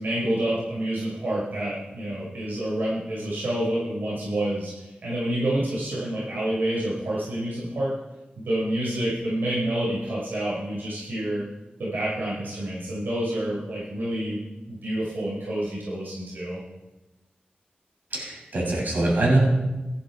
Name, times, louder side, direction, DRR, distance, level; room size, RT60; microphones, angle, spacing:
voice 1, 0.0-7.9 8.4-11.4 11.8-14.4 14.7-16.6, right 1 dB, 90° right, -6 dB, 5.4 m, -28 dB
voice 2, 18.1-19.4, right 2 dB, 65° right, -2 dB, 7.2 m, -23 dB
18.5 x 14.0 x 4.6 m, 1.1 s
wide cardioid pair, 85°, 3 cm